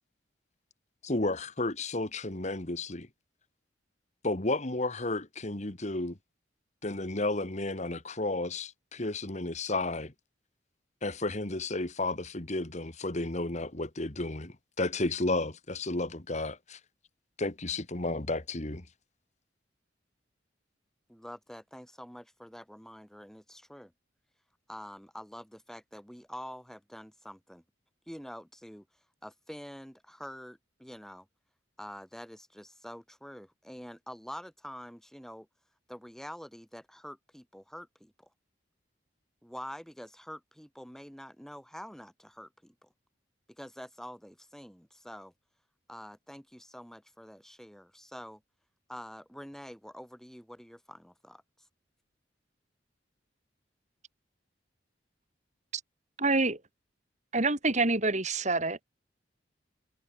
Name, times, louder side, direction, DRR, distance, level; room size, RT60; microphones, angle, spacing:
voice 1, 1.0-3.1 4.2-6.2 6.8-10.1 11.0-16.8 17.4-18.9, left 2 dB, 40° left, 1.8 m, -32 dB
voice 2, 21.1-23.9 24.7-27.6 28.1-28.9 29.2-31.3 31.8-35.5 35.9-38.3 39.4-42.9 43.5-45.3 45.9-48.4 48.9-51.7, equal, ahead, 5.9 m, -46 dB
voice 3, 56.2-56.6 57.3-58.8, right 3 dB, 40° right, 4.7 m, -27 dB
head